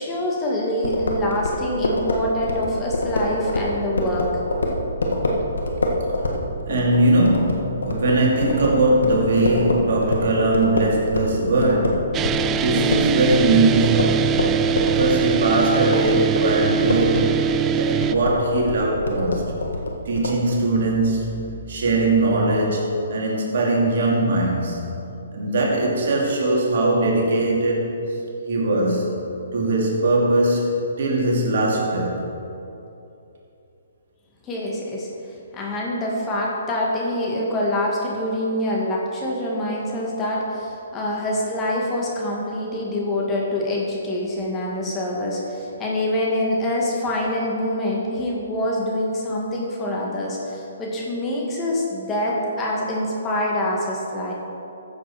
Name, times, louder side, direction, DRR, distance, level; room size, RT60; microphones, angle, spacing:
voice 1, 0.0-4.3 34.4-35.1 35.5-54.3, left 1 dB, 20° left, -3 dB, 2.2 m, -25 dB
sound 1, 0.8-11.4 11.6-20.4, left 1 dB, 80° left, 1.6 m, -25 dB
voice 2, 6.6-12.2 12.6-14.4 14.9-17.4 17.8-19.4 20.1-24.8 25.3-28.0 28.5-32.2, right 2 dB, 60° right, -2 dB, 2.4 m, -21 dB
sound 2, 12.1-18.2, right 8 dB, 20° right, 0.3 m, -22 dB
14.0 x 7.5 x 4.3 m, 2.8 s
hypercardioid pair, 140°, 0 cm